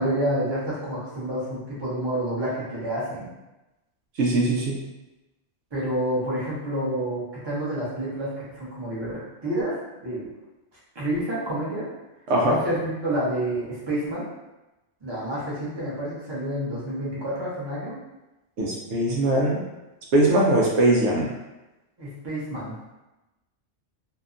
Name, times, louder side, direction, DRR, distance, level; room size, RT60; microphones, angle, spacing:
voice 1, 0.0-3.3 5.7-10.3 10.9-11.9 12.4-14.3 15.0-18.0 22.0-22.7, right 1 dB, 25° right, -8 dB, 0.7 m, -29 dB
voice 2, 4.2-4.8 12.3-12.6 18.6-19.6 20.1-21.3, right 1 dB, 75° right, -3 dB, 0.8 m, -21 dB
2.7 x 2.2 x 2.5 m, 1.0 s
omnidirectional pair, 1.2 m